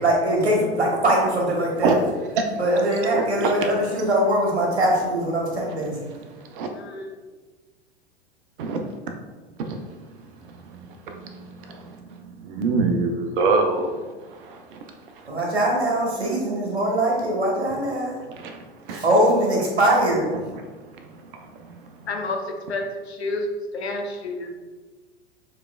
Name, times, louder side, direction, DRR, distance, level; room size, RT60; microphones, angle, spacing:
voice 1, 0.0-1.9 2.6-6.0 15.3-18.1 18.9-20.3, right 1 dB, 80° right, -1 dB, 1.3 m, -22 dB
voice 2, 3.1-3.5 6.5-6.7 8.6-8.8 9.6-9.8 10.6-13.9 14.3-14.9 15.2-15.3 18.3-19.0 20.5-20.6 21.0-22.0, right 4 dB, 55° right, 5 dB, 0.7 m, -26 dB
voice 3, 6.8-7.2 22.1-22.4 22.7-23.5 23.7-24.5, left 2 dB, 75° left, 2 dB, 0.8 m, -29 dB
6.8 x 3.3 x 2.3 m, 1.3 s
figure-of-eight pair, 90°, 32 cm